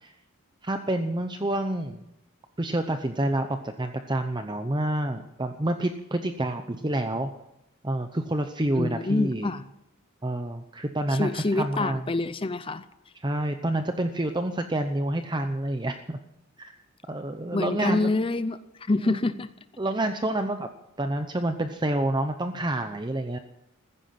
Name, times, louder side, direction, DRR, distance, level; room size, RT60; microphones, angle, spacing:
voice 1, 0.6-2.0 2.6-7.3 7.8-9.5 10.2-12.0 13.2-16.2 16.6-16.7 17.1-18.2 19.0-19.2 19.8-20.7 21.0-23.4, right 1 dB, 20° right, 7 dB, 0.7 m, -28 dB
voice 2, 8.7-9.7 11.1-12.9 17.5-19.5, left 2 dB, 25° left, 13 dB, 0.6 m, -27 dB
15.5 x 15.0 x 5.8 m, 0.83 s
head